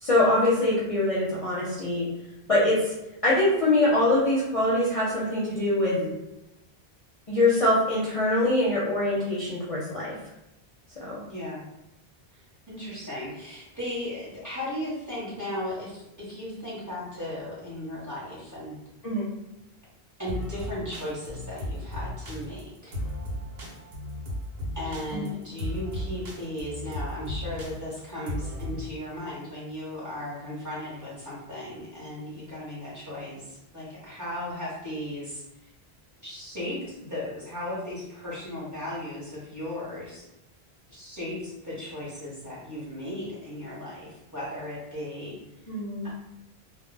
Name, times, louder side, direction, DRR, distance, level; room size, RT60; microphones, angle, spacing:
voice 1, 0.0-2.1 2.5-2.9 3.2-6.0 7.3-10.2 11.0-11.2 19.0-19.3 25.1-25.3 45.7-46.1, left 1 dB, 45° left, -8 dB, 0.5 m, -23 dB
voice 2, 11.3-11.6 12.7-18.7 20.2-23.0 24.7-35.4 36.2-40.3 40.9-45.4 46.0-46.1, left 1 dB, 20° right, -8 dB, 0.8 m, -36 dB
sound 1, 20.3-28.9, left 1 dB, 75° right, 1.0 m, -35 dB
2.1 x 2.1 x 3.2 m, 0.90 s
omnidirectional pair, 1.0 m